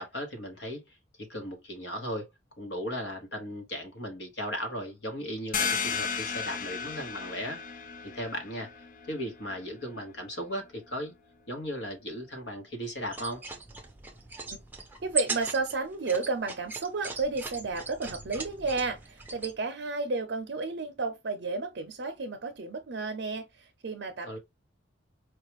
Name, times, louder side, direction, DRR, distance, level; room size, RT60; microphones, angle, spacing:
voice 1, 0.0-2.3 2.6-7.6 8.0-8.7 9.1-11.1 11.5-13.4 24.3-24.4, equal, 65° left, 1.2 m, -36 dB
sound 1, 5.5-10.9, left 6 dB, 45° left, 0.5 m, -35 dB
sound 2, 13.0-19.5, right 4 dB, 10° right, 0.6 m, -39 dB
voice 2, 15.0-24.4, right 3 dB, 65° right, 0.6 m, -32 dB
4.7 x 2.4 x 3.0 m
head